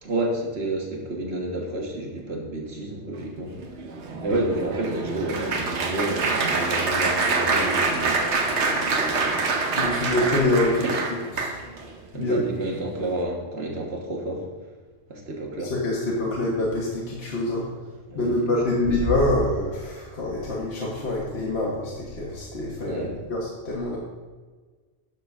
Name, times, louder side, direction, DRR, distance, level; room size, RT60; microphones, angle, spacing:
voice 1, 0.0-3.5 4.2-9.3 10.8-11.1 12.1-14.5 15.1-15.7 18.1-18.4 22.8-23.2, right 1 dB, 65° right, -1 dB, 1.9 m, -30 dB
Applause, 3.6-11.9 12.5-12.8 13.0-13.2, right 3 dB, 85° right, 1.2 m, -26 dB
voice 2, 9.7-10.8 11.4-11.5 12.1-12.4 15.7-17.7 18.1-24.0, left 2 dB, 70° left, -4 dB, 1.7 m, -25 dB
11.5 x 4.1 x 6.0 m, 1.4 s
omnidirectional pair, 1.1 m